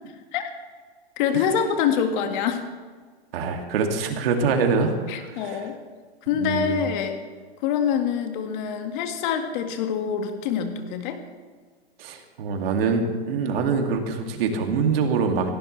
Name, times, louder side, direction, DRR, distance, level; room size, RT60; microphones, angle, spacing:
voice 1, 1.2-2.6 5.1-5.8 6.3-7.2 7.6-11.2, left 8 dB, 50° left, 6 dB, 1.9 m, -25 dB
voice 2, 3.3-5.7 6.4-6.9 12.0-15.5, right 5 dB, 60° right, 3 dB, 2.5 m, -24 dB
17.5 x 16.5 x 3.3 m, 1.5 s
hypercardioid pair, 130°, 32 cm